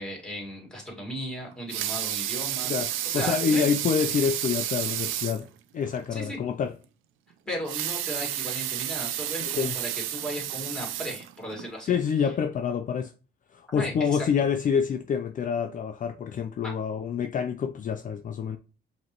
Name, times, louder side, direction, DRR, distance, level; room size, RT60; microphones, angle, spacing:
voice 1, 0.0-3.7 6.1-6.4 7.4-12.0 13.7-14.3 16.6-16.7, equal, 5° left, 2.1 m, -36 dB
Water tap faucet / Sink (filling or washing) / Liquid, 1.5-5.5 5.9-6.0 6.3-6.4 7.5-11.7 12.3-12.4, right 12 dB, 90° right, 0.4 m, -31 dB
voice 2, 2.7-5.5 5.7-6.7 9.4-9.7 11.9-13.1 13.5-18.6, left 7 dB, 40° left, 0.4 m, -27 dB
5.0 x 3.0 x 2.9 m
cardioid pair, 90°, 20 cm